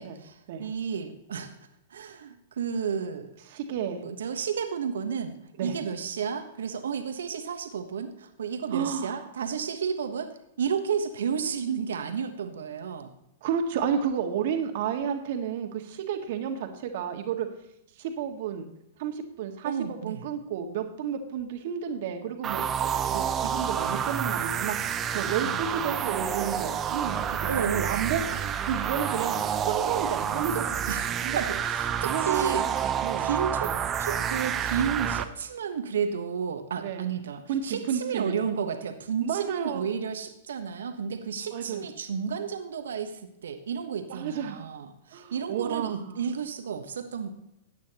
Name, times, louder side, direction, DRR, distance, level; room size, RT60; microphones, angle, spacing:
voice 1, 0.0-1.5 1.9-3.3 4.0-5.3 5.6-10.3 10.6-13.1 19.6-20.2 25.4-25.6 27.5-28.3 30.9-32.7 33.2-47.3, right 7 dB, 75° right, 7 dB, 1.3 m, -32 dB
voice 2, 3.5-4.0 5.6-5.8 8.7-9.2 13.4-17.5 18.0-18.7 19.0-22.6 23.0-29.3 29.7-30.6 31.2-31.4 32.0-33.3 36.8-37.1 37.5-38.3 39.2-39.9 41.5-41.8 44.1-44.7 45.1-46.2, right 8 dB, 60° right, 5 dB, 1.7 m, -31 dB
sound 1, 22.4-35.2, right 8 dB, 25° right, 0.7 m, -29 dB
14.5 x 9.2 x 3.0 m, 0.81 s
hypercardioid pair, 115°, 0 cm